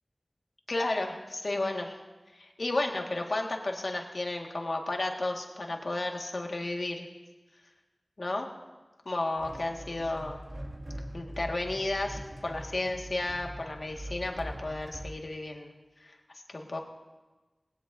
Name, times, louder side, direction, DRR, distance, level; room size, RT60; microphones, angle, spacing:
voice 1, 0.7-2.0 2.3-7.1 8.2-8.5 9.1-10.4 11.1-15.7 16.0-16.2 16.5-16.8, left 2 dB, 75° left, 1 dB, 1.8 m, -33 dB
sound 1, 9.4-15.2, right 1 dB, 50° right, 2.1 m, -42 dB
19.5 x 17.0 x 2.7 m, 1.2 s
wide cardioid pair, 60°, 0 cm